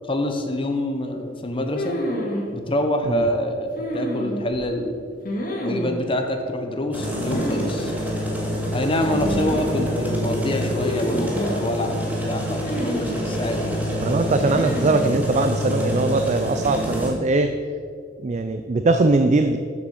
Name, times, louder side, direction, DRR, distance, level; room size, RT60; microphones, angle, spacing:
voice 1, 0.1-2.0 2.5-5.0 5.6-8.0 8.7-13.8, left 1 dB, 30° left, 5 dB, 1.0 m, -26 dB
sound 1, 1.7-2.5 3.8-4.6 5.2-6.0 7.3-7.7 8.0-8.1 9.0-9.7 10.8-11.6 12.6-13.4 14.4-15.1, equal, 50° left, 1.9 m, -28 dB
sound 2, 6.9-17.1, equal, 10° right, 1.7 m, -27 dB
voice 2, 14.0-17.5 18.2-19.6, right 3 dB, 40° right, 8 dB, 0.4 m, -21 dB
7.6 x 6.9 x 6.9 m, 2.2 s
head